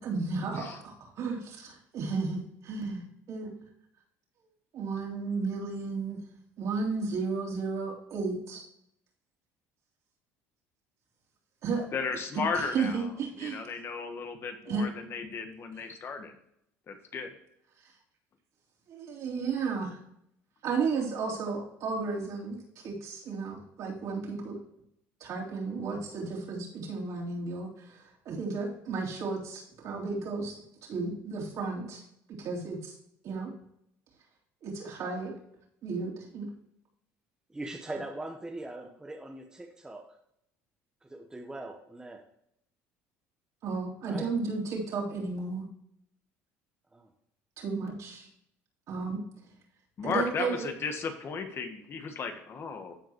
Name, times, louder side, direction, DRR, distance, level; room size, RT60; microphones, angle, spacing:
voice 1, 0.0-3.0 3.3-3.5 4.7-6.2 6.6-8.7 11.6-11.9 12.5-13.6 14.7-14.9 18.9-20.0 20.6-22.5 22.8-24.6 25.2-30.6 30.8-32.0 32.4-33.0 33.2-33.5 34.6-35.4 35.8-36.5 43.6-45.6 47.6-48.3 48.9-49.2 50.0-50.7, right 4 dB, 60° right, -2 dB, 3.5 m, -33 dB
voice 2, 11.9-13.0 13.4-16.3 16.9-17.3 50.0-53.0, left 5 dB, 40° left, 7 dB, 1.4 m, -35 dB
voice 3, 37.5-40.0 41.0-42.2 44.0-44.3 46.9-47.1, right 2 dB, 10° right, 1 dB, 1.1 m, -41 dB
13.5 x 4.8 x 3.0 m, 0.73 s
supercardioid pair, 100°, 6 cm